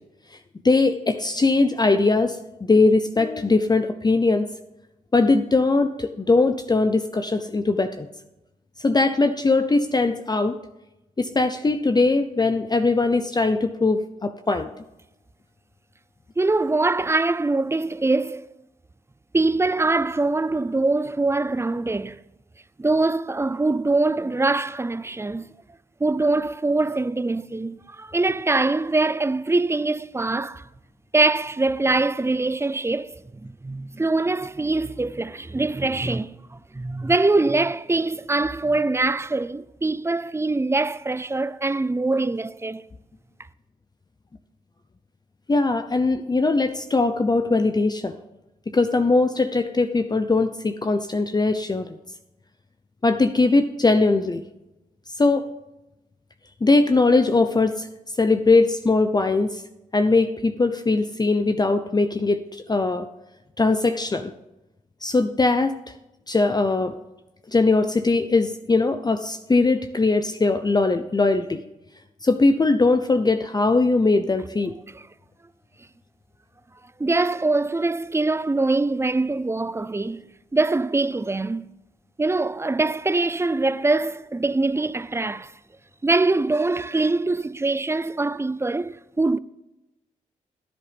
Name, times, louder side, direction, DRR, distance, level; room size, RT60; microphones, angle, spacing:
voice 1, 0.6-4.5 5.1-8.1 8.8-10.6 11.2-14.7 45.5-48.1 48.7-52.0 53.0-54.4 55.1-55.4 56.6-57.9 58.2-59.6 59.9-63.1 63.6-64.3 65.0-65.7 66.3-66.9 67.5-71.6 72.2-74.7, left 3 dB, 25° left, 0.7 m, -20 dB
voice 2, 16.4-18.5 19.3-22.2 22.8-25.5 26.0-30.7 31.1-42.8 77.0-80.2 80.5-81.7 82.2-85.5 86.0-89.4, right 2 dB, 15° right, 0.6 m, -23 dB
15.0 x 10.0 x 3.5 m
supercardioid pair, 45°, 15 cm